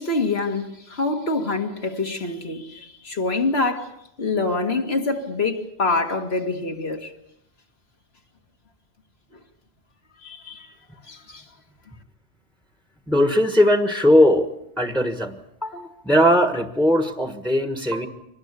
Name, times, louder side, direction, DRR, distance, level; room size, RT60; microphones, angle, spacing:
voice 1, 0.0-7.1 10.2-10.7 11.0-11.4, left 3 dB, 60° left, 2.2 m, -26 dB
voice 2, 13.1-14.5 14.8-18.1, equal, ahead, 1.3 m, -19 dB
25.0 x 19.5 x 8.3 m
omnidirectional pair, 1.2 m